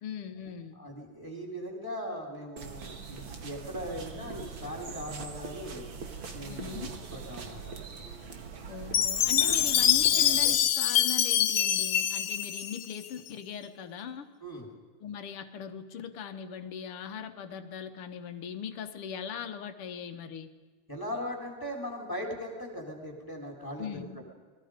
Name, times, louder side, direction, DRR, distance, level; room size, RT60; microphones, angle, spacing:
voice 1, 0.0-0.8 6.5-6.9 8.7-14.3 15.0-20.5 23.8-24.2, left 7 dB, 85° left, 8 dB, 2.2 m, -39 dB
voice 2, 0.8-5.9 6.3-7.7 14.4-14.7 20.9-24.3, equal, 10° left, 0 dB, 4.2 m, -39 dB
sound 1, 2.6-10.6, right 5 dB, 65° right, 2.6 m, -42 dB
Chime, 8.9-13.3, left 10 dB, 65° left, 1.5 m, -25 dB
30.0 x 21.0 x 5.2 m, 1.4 s
omnidirectional pair, 2.4 m